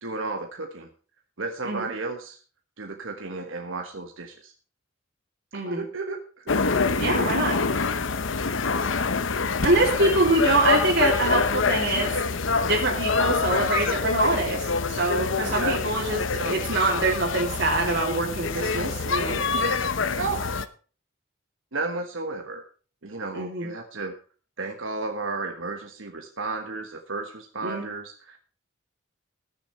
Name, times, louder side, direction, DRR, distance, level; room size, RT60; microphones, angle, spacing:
voice 1, 0.0-0.9 1.4-2.4 2.8-4.5 5.5-6.2 9.9-10.2 15.4-15.8 20.1-20.4 21.7-22.6 23.0-24.1 24.6-28.4, right 3 dB, 80° right, 3 dB, 1.3 m, -33 dB
voice 2, 5.5-5.8 7.0-7.6 9.6-12.1 12.6-19.4 23.3-23.7 27.6-27.9, right 2 dB, 60° right, -3 dB, 3.0 m, -24 dB
sound 1, 6.5-20.7, left 4 dB, 70° left, 0.8 m, -26 dB
20.0 x 7.0 x 4.4 m, 0.39 s
head